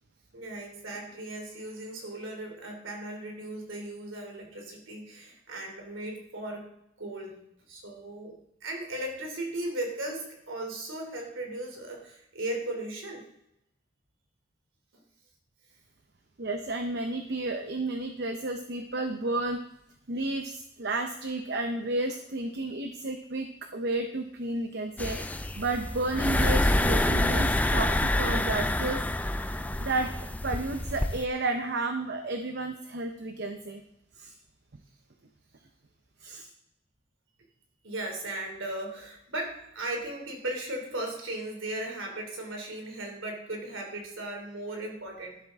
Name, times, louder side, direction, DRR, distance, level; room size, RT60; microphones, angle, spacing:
voice 1, 0.3-6.7 7.0-7.4 7.7-13.3 37.8-45.4, right 1 dB, 90° right, 2 dB, 3.0 m, -37 dB
voice 2, 16.4-19.6 20.1-25.2 25.6-29.0 29.5-33.8 34.2-34.3 36.2-36.5, right 2 dB, 55° right, 6 dB, 0.9 m, -32 dB
sound 1, 25.0-31.2, left 1 dB, 10° left, 0.4 m, -27 dB
11.5 x 11.0 x 3.7 m, 0.81 s
head